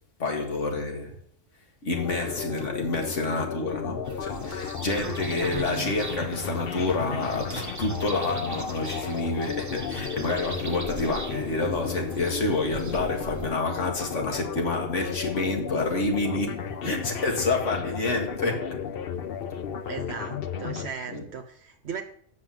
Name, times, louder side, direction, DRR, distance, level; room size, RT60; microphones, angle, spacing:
voice 1, 0.2-1.2 1.8-19.0 21.1-21.2, left 2 dB, 75° left, 2.2 m, -28 dB
sound 1, 1.9-20.9, left 7 dB, 55° left, 0.8 m, -34 dB
sound 2, 4.0-13.5, right 3 dB, 30° right, 0.3 m, -40 dB
voice 2, 5.0-5.9 16.8-17.0 19.8-22.0, right 6 dB, 65° right, 1.0 m, -37 dB
7.5 x 6.1 x 7.5 m
omnidirectional pair, 1.3 m